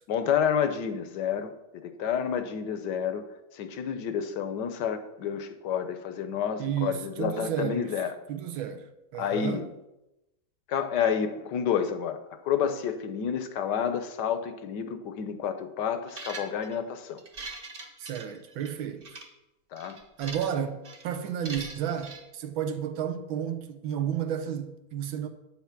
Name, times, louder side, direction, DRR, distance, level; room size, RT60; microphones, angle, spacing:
voice 1, 0.1-3.3 3.5-8.1 9.2-9.7 10.7-12.2 12.4-17.2 19.7-20.0, left 8 dB, 70° left, 1.2 m, -29 dB
voice 2, 6.6-8.0 8.3-9.7 18.0-19.2 20.2-25.3, right 9 dB, 85° right, 1.6 m, -32 dB
sound 1, 16.1-16.8 17.2-18.7 19.0-19.3 19.8-20.6 20.8-21.0 21.5-22.2, right 3 dB, 35° right, 1.2 m, -41 dB
8.7 x 5.8 x 5.9 m
omnidirectional pair, 2.1 m